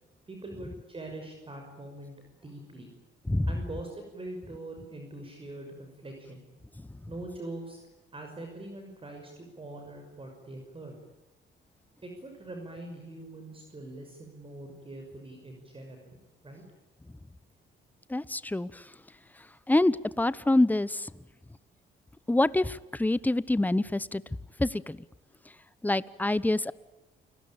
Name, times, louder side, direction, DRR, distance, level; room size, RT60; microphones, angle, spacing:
voice 1, 0.3-2.1 2.4-2.9 3.5-6.4 7.1-7.8 8.1-11.0 12.0-16.6, right 2 dB, 25° right, 3 dB, 6.0 m, -43 dB
voice 2, 18.1-18.8 19.7-21.1 22.3-24.2 24.6-25.0 25.8-26.7, left 2 dB, 10° left, 18 dB, 0.9 m, -26 dB
29.0 x 19.5 x 8.8 m, 1.0 s
cardioid pair, 90°, 20 cm